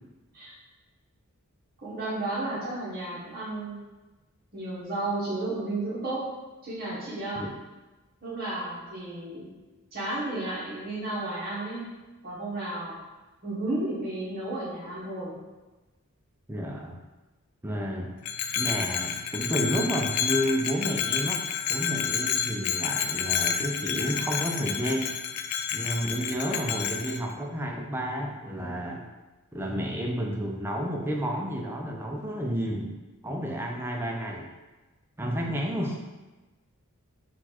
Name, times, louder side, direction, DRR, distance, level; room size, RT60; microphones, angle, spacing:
voice 1, 1.8-3.8 4.5-6.2 6.6-7.4 8.2-9.5 9.9-11.8 12.2-12.9 13.4-15.3, right 2 dB, 45° right, -8 dB, 1.1 m, -32 dB
voice 2, 16.5-17.0 17.6-18.1 18.5-21.4 21.7-25.1 25.7-29.0 29.5-33.0 33.2-34.5 35.2-36.0, equal, 10° right, 0 dB, 0.5 m, -30 dB
Bell, 18.2-27.2, left 8 dB, 80° left, 0.3 m, -30 dB
4.2 x 2.4 x 4.3 m, 1.2 s
head